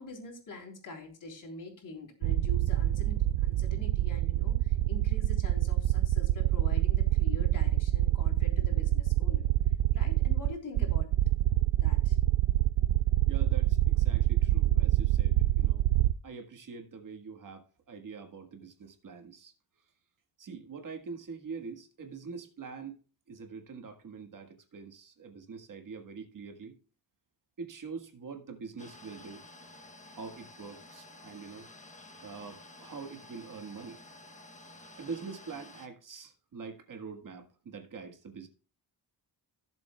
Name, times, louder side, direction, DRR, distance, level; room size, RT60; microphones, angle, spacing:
voice 1, 0.0-9.5 9.9-11.1 11.8-12.2, left 3 dB, 45° left, 3.6 m, -45 dB
sound 1, 2.2-16.1, right 15 dB, 85° right, 0.5 m, -26 dB
voice 2, 13.3-15.8 16.2-19.5 20.4-23.0 23.3-26.7 27.6-29.4 30.1-31.7 32.2-34.0 35.0-38.5, right 5 dB, 45° right, 1.6 m, -44 dB
sound 2, 28.8-35.9, left 2 dB, 15° left, 1.0 m, -52 dB
16.5 x 7.4 x 2.3 m
wide cardioid pair, 160°, 44 cm